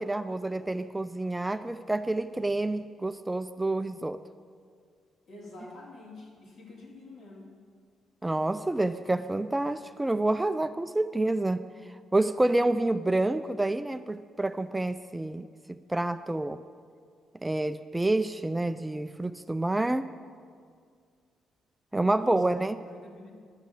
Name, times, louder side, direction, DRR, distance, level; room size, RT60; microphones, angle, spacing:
voice 1, 0.0-4.2 8.2-11.6 12.1-15.5 15.9-16.6 17.4-20.1 21.9-22.8, right 2 dB, 10° right, 11 dB, 0.3 m, -28 dB
voice 2, 5.3-7.5 22.1-23.3, left 2 dB, 60° left, -2 dB, 2.5 m, -47 dB
11.5 x 6.2 x 8.2 m, 2.1 s
cardioid pair, 90°, 0 cm